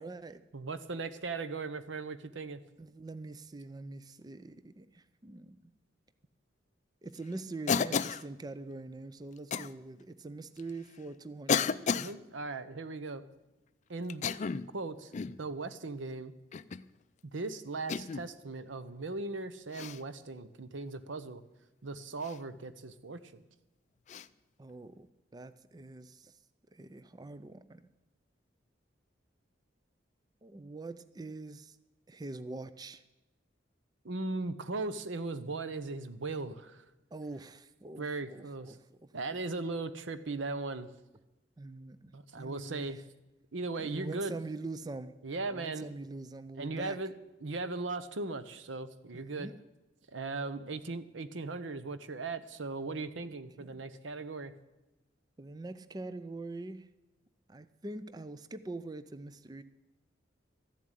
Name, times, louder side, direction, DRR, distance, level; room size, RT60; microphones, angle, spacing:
voice 1, 0.0-0.4 2.8-5.7 7.0-11.7 24.6-25.1 25.3-26.3 26.7-27.9 30.4-31.8 32.1-33.0 37.1-39.1 41.6-43.0 43.8-45.2 45.5-47.0 49.1-49.6 53.6-53.9 55.4-56.9 57.5-59.6, right 2 dB, 20° right, 0.4 m, -44 dB
voice 2, 0.5-2.6 11.9-13.2 13.9-14.2 14.7-15.1 15.4-16.3 17.3-21.4 21.8-23.4 34.0-36.8 38.0-38.8 39.1-40.9 42.1-43.0 43.5-44.4 45.2-45.9 46.6-47.1 47.4-49.5 50.1-54.5, right 3 dB, 90° right, 0.9 m, -38 dB
Cough, 7.7-8.3 9.5-9.7 10.6-10.7 11.5-12.1 14.1-14.7 15.1-15.4 16.5-16.9 17.9-18.3 19.7-20.0 22.2-22.4 24.1-24.3, left 6 dB, 40° left, 0.4 m, -32 dB
13.5 x 7.4 x 9.8 m
head